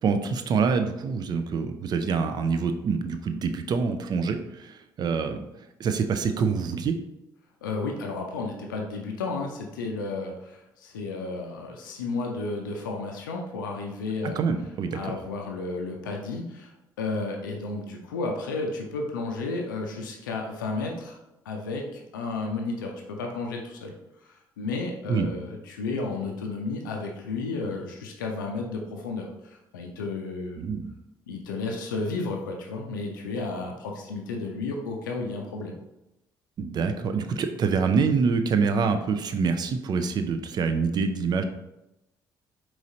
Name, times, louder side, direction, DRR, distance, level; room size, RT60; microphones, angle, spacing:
voice 1, 0.0-5.5 5.8-7.0 14.4-15.2 25.1-25.3 30.6-30.9 36.6-41.4, right 5 dB, 40° right, 8 dB, 0.5 m, -26 dB
voice 2, 7.6-14.4 14.9-21.2 21.5-23.9 24.2-30.6 31.3-35.8, left 3 dB, 75° left, 1 dB, 0.5 m, -32 dB
4.8 x 3.0 x 2.7 m, 0.90 s
figure-of-eight pair, 45°, 11 cm